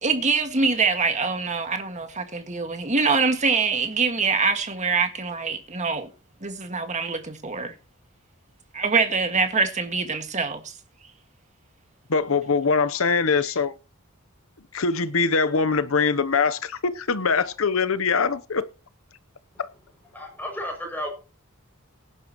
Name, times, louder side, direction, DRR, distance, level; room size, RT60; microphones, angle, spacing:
voice 1, 0.0-6.1 6.4-7.7 8.7-10.6, right 4 dB, 35° right, 1.8 m, -24 dB
voice 2, 12.1-13.8 14.7-18.7 19.6-19.7, left 5 dB, 70° left, 0.8 m, -23 dB
voice 3, 20.1-21.1, equal, 10° left, 6.4 m, -32 dB
17.5 x 11.0 x 3.0 m
head